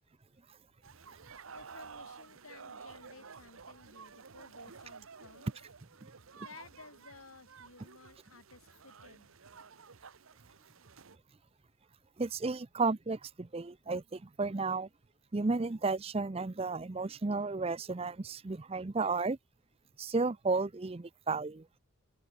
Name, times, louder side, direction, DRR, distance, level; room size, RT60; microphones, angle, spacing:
sound 1, 0.8-11.2, right 5 dB, 75° right, 1.0 m, -52 dB
voice 1, 1.5-5.5 6.4-9.3, left 3 dB, 85° left, 3.8 m, -55 dB
voice 2, 12.2-14.9 15.3-19.4 20.0-21.7, right 3 dB, 30° right, 0.5 m, -33 dB
head